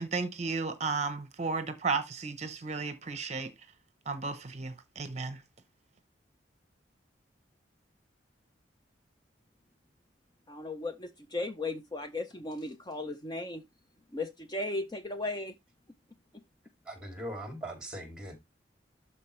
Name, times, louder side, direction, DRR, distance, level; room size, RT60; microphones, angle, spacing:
voice 1, 0.0-3.5 4.1-5.4, right 4 dB, 40° right, 0.8 m, -34 dB
voice 2, 10.5-13.6 14.1-15.6 16.3-16.4, left 2 dB, 25° left, 0.7 m, -36 dB
voice 3, 16.8-18.4, right 1 dB, 5° right, 2.6 m, -40 dB
13.0 x 4.4 x 3.2 m
head